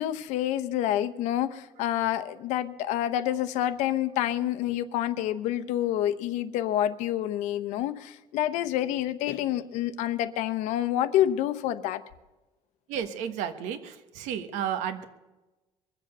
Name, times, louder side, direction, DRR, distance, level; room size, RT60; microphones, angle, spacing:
voice 1, 0.0-12.0, left 12 dB, 80° left, 13 dB, 0.9 m, -28 dB
voice 2, 12.9-15.0, right 9 dB, 80° right, 10 dB, 1.4 m, -32 dB
23.0 x 7.7 x 6.7 m, 1.1 s
cardioid pair, 170°, 12 cm